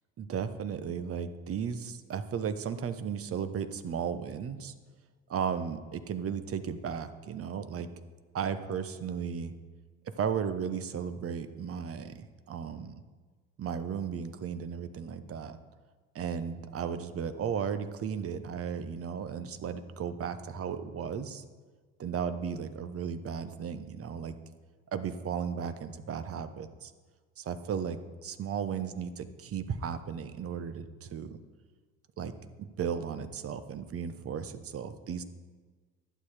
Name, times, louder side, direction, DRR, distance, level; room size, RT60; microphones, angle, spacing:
voice 1, 0.2-4.7 5.3-7.9 8.3-9.5 10.0-13.0 13.6-15.6 16.1-21.4 22.0-24.3 24.9-26.9 27.4-31.4 32.2-32.3 32.6-35.2, right 7 dB, 40° right, 11 dB, 1.1 m, -35 dB
11.5 x 9.0 x 4.9 m, 1.4 s
hypercardioid pair, 60°, 35 cm